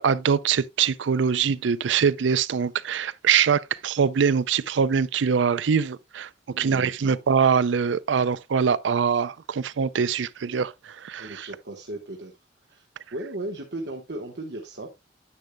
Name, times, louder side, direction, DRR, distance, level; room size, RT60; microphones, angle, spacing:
voice 1, 0.0-6.3 6.6-11.4, right 6 dB, 85° right, 0.4 m, -23 dB
voice 2, 6.5-7.2 11.2-12.3 12.7-12.8 13.1-14.9, right 1 dB, 65° right, 1.2 m, -36 dB
10.0 x 8.3 x 2.2 m
head